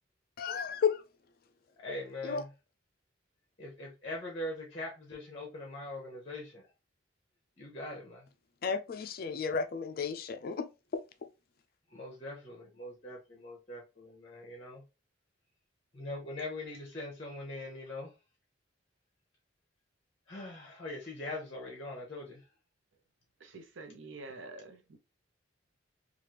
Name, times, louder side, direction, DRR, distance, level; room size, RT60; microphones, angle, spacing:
voice 1, 0.4-1.0 1.9-2.0 2.2-2.4 8.6-10.7 10.9-11.0, left 6 dB, 50° left, 0.4 m, -33 dB
voice 2, 1.8-2.5 3.6-6.6 7.6-8.3 11.9-14.8 15.9-18.1 20.3-22.4, left 2 dB, 30° left, 0.8 m, -42 dB
voice 3, 23.4-25.0, right 3 dB, 70° right, 0.7 m, -47 dB
3.2 x 2.4 x 2.8 m
head